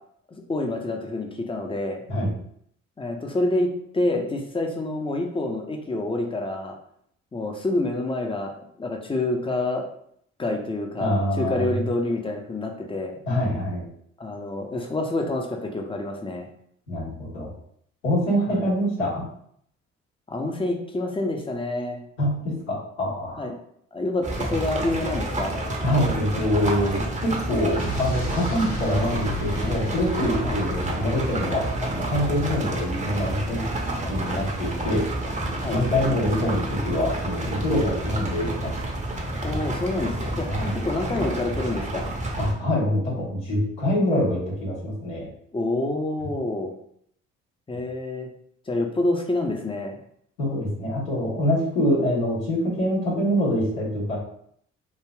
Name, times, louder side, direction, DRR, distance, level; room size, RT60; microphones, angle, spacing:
voice 1, 0.3-2.0 3.0-6.8 7.3-8.5 8.8-9.9 10.4-13.2 14.2-16.5 20.3-22.0 23.4-23.6 23.9-25.6 30.4-30.6 35.6-35.8 37.8-38.1 39.4-40.5 40.7-42.1 45.5-46.7 47.7-48.3 48.7-50.0, left 2 dB, 15° left, 2 dB, 0.6 m, -27 dB
voice 2, 11.0-11.8 13.2-13.9 16.9-17.5 18.0-19.2 22.2-23.5 25.8-33.7 34.1-35.0 35.7-38.7 40.5-40.7 42.4-45.3 50.4-54.2, equal, 85° left, -9 dB, 1.3 m, -25 dB
sound 1, 24.2-42.5, right 1 dB, 20° right, 0.7 m, -29 dB
Explosion, 27.8-32.5, left 1 dB, 65° left, 1.3 m, -34 dB
3.3 x 2.4 x 2.3 m, 0.68 s
hypercardioid pair, 45°, 35 cm